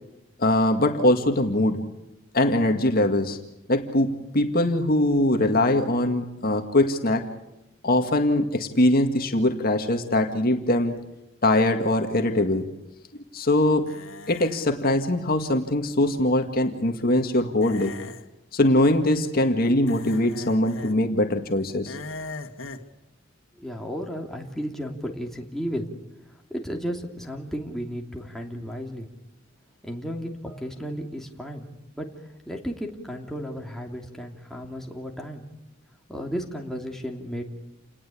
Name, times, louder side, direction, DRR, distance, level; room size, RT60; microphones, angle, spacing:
voice 1, 0.4-1.8 2.3-3.4 3.7-7.2 7.8-11.0 11.4-12.6 13.3-13.9 14.3-17.9 18.5-22.0, left 1 dB, 50° left, 5 dB, 2.0 m, -22 dB
sound 1, 13.9-14.7 17.6-18.3 19.9-20.9 21.9-22.9, left 3 dB, 85° left, 1.9 m, -39 dB
voice 2, 23.6-25.9 26.5-29.1 29.8-31.7 32.0-32.1 32.5-35.4 36.1-37.4, equal, ahead, 0 dB, 2.9 m, -33 dB
29.0 x 20.0 x 8.6 m, 0.93 s
head